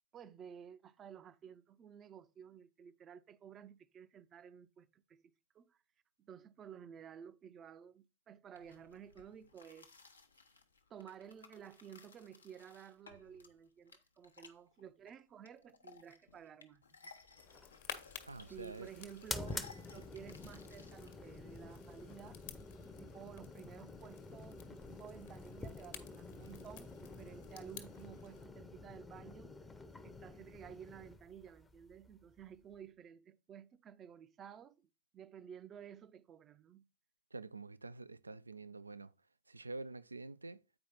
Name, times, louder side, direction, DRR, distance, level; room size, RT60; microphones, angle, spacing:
voice 1, 0.1-5.8 6.2-9.9 10.9-17.1 18.5-22.4 23.0-29.5 30.0-36.8, right 8 dB, 25° right, 0.5 m, -54 dB
sound 1, 8.5-21.1, left 4 dB, 75° left, 0.9 m, -60 dB
sound 2, 17.4-28.5, left 9 dB, 55° left, 1.2 m, -54 dB
sound 3, 17.4-32.7, left 3 dB, 10° left, 0.7 m, -49 dB
voice 2, 18.2-18.9 37.3-39.1 39.5-40.6, right 3 dB, 80° right, 0.3 m, -47 dB
8.7 x 4.7 x 4.3 m
figure-of-eight pair, 90°, 0 cm